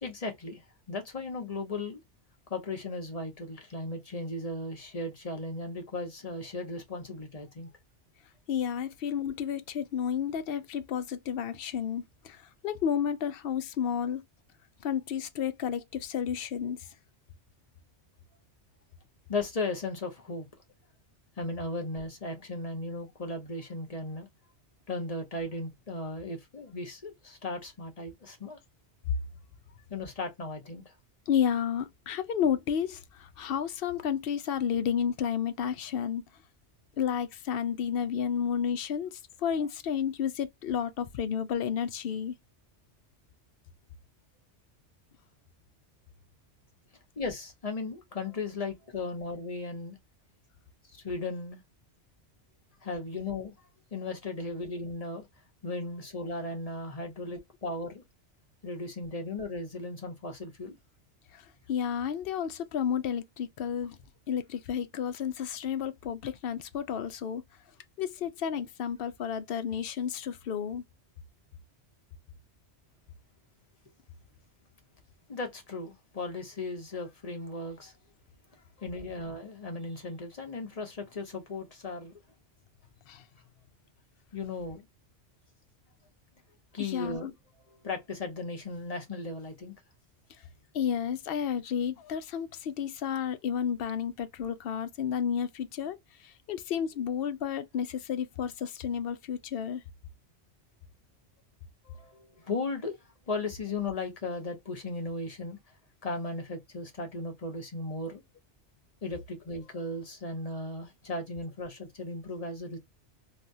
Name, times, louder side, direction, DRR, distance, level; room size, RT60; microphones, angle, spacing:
voice 1, 0.0-2.0 2.5-7.7 19.3-20.5 21.4-24.3 24.9-28.6 29.9-30.9 47.2-50.0 50.9-51.6 52.8-55.3 55.6-58.0 58.6-60.8 75.3-77.9 78.8-82.2 84.3-84.9 86.7-87.3 87.8-89.7 101.8-103.0 103.3-105.6 106.0-108.2 109.0-112.8, left 2 dB, 35° left, 1.1 m, -36 dB
voice 2, 8.5-14.2 14.8-16.8 26.2-26.3 31.3-36.2 37.0-42.3 61.3-61.4 61.7-64.0 64.3-67.4 68.0-70.8 83.1-83.2 86.8-87.3 90.7-96.0 96.2-99.8, left 8 dB, 60° left, 0.7 m, -31 dB
3.4 x 2.3 x 2.6 m
omnidirectional pair, 1.2 m